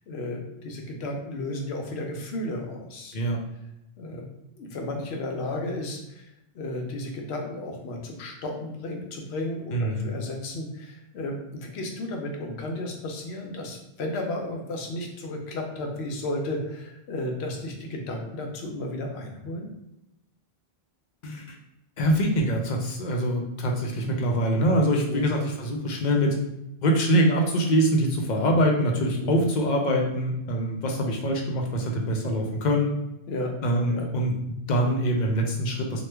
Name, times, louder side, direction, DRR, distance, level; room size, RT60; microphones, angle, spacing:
voice 1, 0.1-3.1 4.0-4.3 4.6-6.3 6.5-19.7 25.1-25.3 29.2-29.4 33.3-33.5 33.9-34.1, left 1 dB, 80° left, 2 dB, 0.9 m, -33 dB
voice 2, 9.7-10.1 21.2-21.4 22.0-26.4 26.8-32.9 33.6-36.1, equal, 55° left, 1 dB, 0.6 m, -24 dB
3.0 x 2.2 x 3.3 m, 0.87 s
omnidirectional pair, 1.1 m